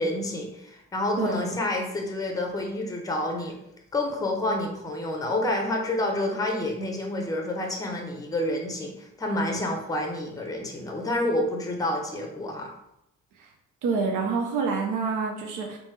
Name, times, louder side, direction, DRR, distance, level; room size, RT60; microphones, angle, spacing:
voice 1, 0.0-3.6 3.9-12.7, left 1 dB, 10° left, 2 dB, 0.6 m, -28 dB
voice 2, 1.2-1.6 13.4-13.5 13.8-15.8, right 4 dB, 85° right, 1 dB, 0.6 m, -27 dB
3.0 x 2.1 x 3.1 m, 0.83 s
cardioid pair, 90°, 30 cm